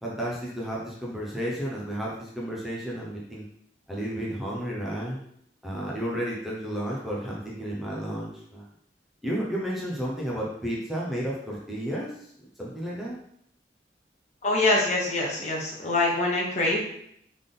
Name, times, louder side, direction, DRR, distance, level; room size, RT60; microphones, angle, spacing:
voice 1, 0.0-3.4 3.9-5.2 5.6-8.6 9.2-12.1 12.6-13.2, equal, ahead, -5 dB, 0.9 m, -32 dB
voice 2, 14.4-16.8, left 2 dB, 40° left, -3 dB, 1.1 m, -24 dB
3.8 x 3.6 x 3.8 m, 0.71 s
head